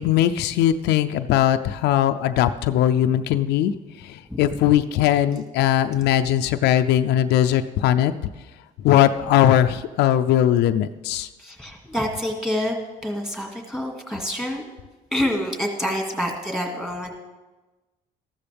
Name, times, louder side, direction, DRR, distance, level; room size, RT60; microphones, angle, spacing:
voice 1, 0.0-3.7 4.0-8.1 8.8-11.3, left 11 dB, 85° left, 9 dB, 0.5 m, -20 dB
voice 2, 11.4-14.6 15.1-17.1, equal, 5° right, 2 dB, 2.1 m, -27 dB
14.0 x 12.5 x 3.5 m, 1.2 s
cardioid pair, 110°, 17 cm